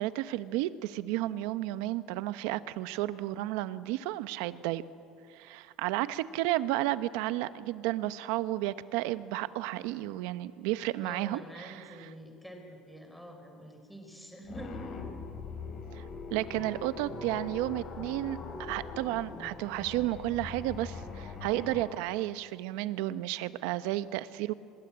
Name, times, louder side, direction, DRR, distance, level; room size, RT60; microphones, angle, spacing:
voice 1, 0.0-4.8 5.3-12.1 15.9-16.1 16.3-24.5, right 15 dB, 85° right, 14 dB, 0.9 m, -32 dB
voice 2, 11.0-14.9, right 1 dB, ahead, 3 dB, 4.4 m, -46 dB
sound 1, 14.5-21.9, left 4 dB, 45° left, 3.9 m, -42 dB
24.5 x 21.0 x 8.7 m, 2.3 s
cardioid pair, 115°, 0 cm